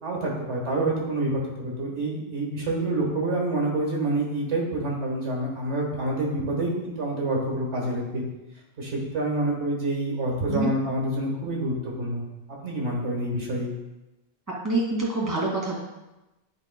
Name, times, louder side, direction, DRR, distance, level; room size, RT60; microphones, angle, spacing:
voice 1, 0.0-8.2 8.8-12.2 12.6-13.7, right 1 dB, 90° right, -3 dB, 1.7 m, -27 dB
voice 2, 14.6-15.8, right 2 dB, 15° right, -5 dB, 1.9 m, -26 dB
10.5 x 4.4 x 2.2 m, 1.0 s
omnidirectional pair, 1.1 m